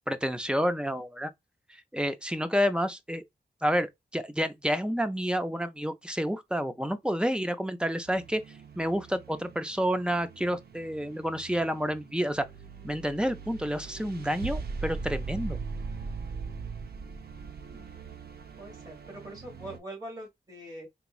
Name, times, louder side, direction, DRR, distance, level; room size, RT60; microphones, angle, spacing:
voice 1, 0.1-1.3 1.7-3.2 3.6-8.4 8.8-12.5 12.8-15.6, equal, 5° right, 0.4 m, -29 dB
sound 1, 8.1-19.8, right 4 dB, 60° right, 0.5 m, -40 dB
voice 2, 17.7-18.2 18.6-20.9, right 1 dB, 20° right, 1.3 m, -43 dB
3.5 x 3.0 x 2.3 m
wide cardioid pair, 130°, 18 cm